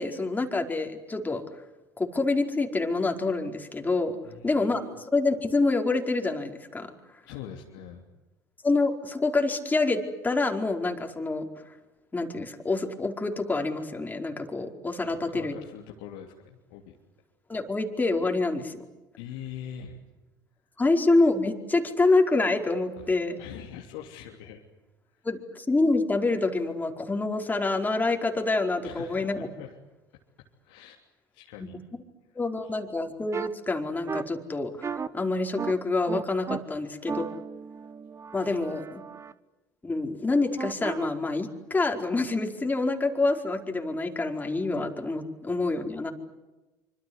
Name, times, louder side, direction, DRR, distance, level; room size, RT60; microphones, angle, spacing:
voice 1, 0.0-1.4 2.0-4.2 4.4-6.9 8.6-11.5 12.1-15.5 17.5-18.8 20.8-23.4 25.2-29.5 32.3-37.3 38.3-39.0 39.8-46.1, left 3 dB, 15° left, 3 dB, 4.7 m, -27 dB
voice 2, 4.2-4.8 7.2-8.0 15.0-16.9 19.2-20.0 23.0-24.6 28.8-29.8 30.6-31.0 31.3-31.8 32.6-32.7, left 9 dB, 70° left, 0 dB, 3.1 m, -43 dB
sound 1, 33.3-33.5 34.1-34.2 34.8-35.1 35.6-35.7 36.1-36.6 37.1-39.3 40.6-41.1, right 6 dB, 30° right, 1.3 m, -35 dB
26.5 x 26.0 x 8.1 m, 1.1 s
hypercardioid pair, 70°, 10 cm